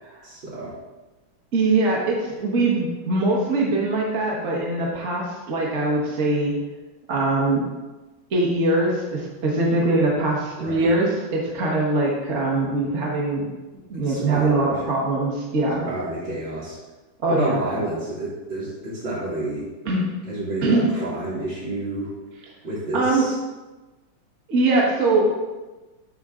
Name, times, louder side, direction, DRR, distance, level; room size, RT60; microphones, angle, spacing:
voice 1, 0.2-0.7 10.6-10.9 14.1-14.8 15.8-16.8 17.3-19.7 20.2-22.1 22.6-23.3, right 1 dB, 60° right, -9 dB, 3.6 m, -29 dB
voice 2, 1.5-6.5 7.1-7.7 8.3-13.5 13.9-15.9 17.2-17.6 19.8-20.1 20.6-20.9 22.9-23.3 24.5-25.3, right 2 dB, 40° right, -3 dB, 1.2 m, -22 dB
7.7 x 6.1 x 3.7 m, 1.2 s
omnidirectional pair, 2.2 m